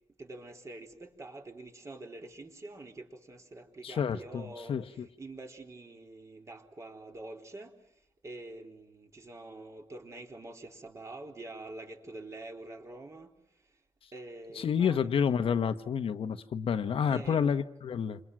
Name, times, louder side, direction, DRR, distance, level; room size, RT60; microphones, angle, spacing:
voice 1, 0.2-7.8 8.2-13.4 14.1-15.1 17.1-17.5, right 2 dB, 30° right, 3.9 m, -46 dB
voice 2, 3.8-4.4 4.7-5.1 14.5-18.2, left 7 dB, 70° left, 1.3 m, -29 dB
29.0 x 28.0 x 6.2 m
wide cardioid pair, 145°, 10 cm